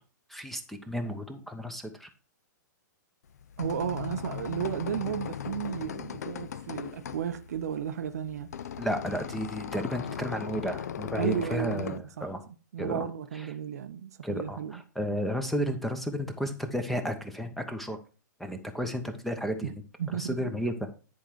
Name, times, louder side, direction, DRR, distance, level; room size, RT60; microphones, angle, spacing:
voice 1, 0.3-2.1 8.8-12.4 12.8-13.1 14.2-18.0 18.4-19.7 20.1-20.7, equal, ahead, 0.9 m, -32 dB
sound 1, 3.3-12.0, left 8 dB, 55° left, 0.6 m, -38 dB
voice 2, 3.6-8.5 11.2-12.3 12.7-14.8 19.6-19.7 20.0-20.5, right 8 dB, 55° right, 0.6 m, -33 dB
10.0 x 4.6 x 4.5 m
figure-of-eight pair, 110°, 10 cm